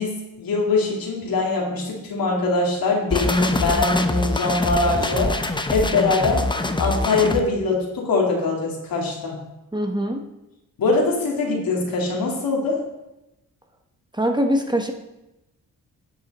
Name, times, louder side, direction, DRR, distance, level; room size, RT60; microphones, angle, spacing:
voice 1, 0.0-6.5 6.8-9.4 10.8-12.8, left 3 dB, 75° left, -1 dB, 2.6 m, -22 dB
sound 1, 3.1-7.4, left 2 dB, 15° left, 0.8 m, -24 dB
voice 2, 9.7-10.2 14.1-14.9, equal, 10° right, 4 dB, 1.1 m, -22 dB
11.0 x 7.1 x 4.2 m, 0.94 s
cardioid pair, 80°, 35 cm